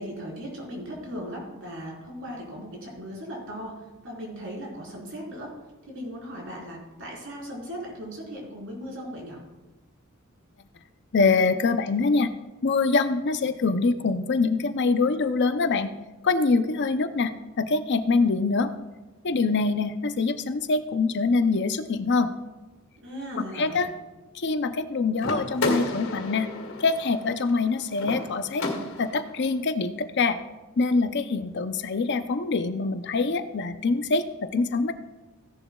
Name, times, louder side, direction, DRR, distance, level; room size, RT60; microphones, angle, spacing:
voice 1, 0.0-3.7 4.0-5.5 5.9-9.4 23.0-23.8, equal, 65° right, -3 dB, 4.2 m, -37 dB
voice 2, 11.1-12.3 12.6-15.9 16.2-17.3 17.6-18.7 19.2-22.3 23.6-23.9 24.3-26.5 26.8-28.6 29.0-30.4 30.8-34.9, left 4 dB, 55° left, 10 dB, 0.6 m, -24 dB
sound 1, 25.2-29.3, left 2 dB, 85° left, 2.0 m, -32 dB
16.0 x 11.0 x 2.3 m, 1.1 s
head